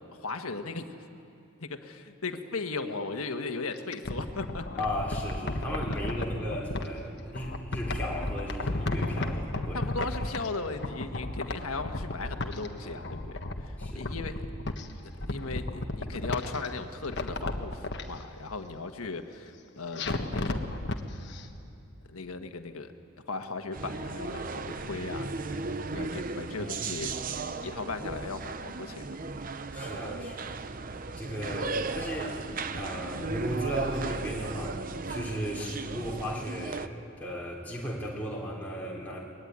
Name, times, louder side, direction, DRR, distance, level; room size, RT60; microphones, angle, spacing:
voice 1, 0.1-0.9 1.6-4.8 5.9-6.0 9.7-14.4 15.0-20.7 22.1-22.9 23.3-25.6 25.9-27.1 27.6-29.0, left 3 dB, 85° left, 6 dB, 1.5 m, -37 dB
sound 1, 3.7-6.9 7.3-10.6 10.8-12.7 13.0-14.8 15.2-16.7 17.0-18.0 20.0-21.0 21.3-21.4, left 2 dB, 50° left, 1.4 m, -33 dB
voice 2, 4.8-10.1 12.8-13.0 13.8-14.1 24.7-24.9 26.6-26.7 29.7-30.8 31.2-32.4 32.7-34.8 35.1-39.2, equal, 5° left, -4 dB, 3.6 m, -36 dB
sound 2, 23.7-36.9, right 3 dB, 40° right, 0.7 m, -36 dB
24.5 x 20.5 x 9.6 m, 2.7 s
head